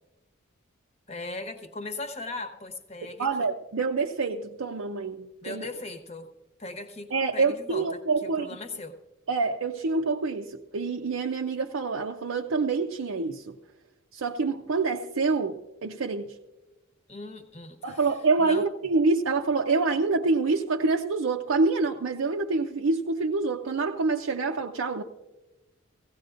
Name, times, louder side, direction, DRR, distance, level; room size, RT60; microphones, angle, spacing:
voice 1, 1.1-3.3 5.4-6.3 6.6-8.9 17.1-18.0 18.4-18.7, left 2 dB, 30° left, 1.0 m, -38 dB
voice 2, 3.2-5.7 7.1-8.5 9.3-13.6 14.1-16.3 17.8-25.0, right 3 dB, 80° right, 0.6 m, -26 dB
17.0 x 16.0 x 2.5 m
head